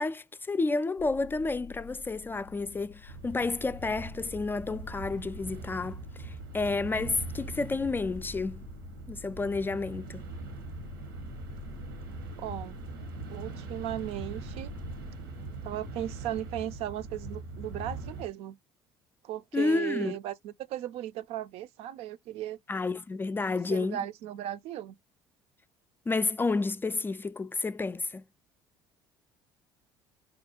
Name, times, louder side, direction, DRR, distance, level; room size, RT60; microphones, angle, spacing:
voice 1, 0.0-8.6 9.1-10.2 19.5-20.2 22.7-24.0 26.1-28.2, left 3 dB, 20° left, 0.3 m, -30 dB
sound 1, 1.0-15.1, left 7 dB, 85° left, 0.5 m, -49 dB
sound 2, 3.1-18.3, right 3 dB, 90° right, 1.0 m, -42 dB
voice 2, 12.4-12.8 13.3-14.7 15.6-18.6 19.2-22.6 23.7-25.0, right 12 dB, 65° right, 0.5 m, -36 dB
5.3 x 2.2 x 2.8 m
hypercardioid pair, 65°, 11 cm